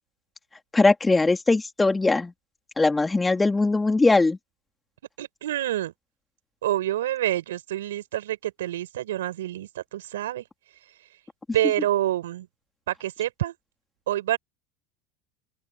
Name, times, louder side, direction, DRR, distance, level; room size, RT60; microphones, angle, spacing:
voice 1, 0.7-2.3 2.8-4.4, left 3 dB, 15° left, 2.6 m, -20 dB
voice 2, 5.2-5.9 6.6-10.4 11.5-12.5 12.9-13.5 14.1-14.4, right 13 dB, 85° right, 5.9 m, -27 dB
open air
hypercardioid pair, 95°, 0 cm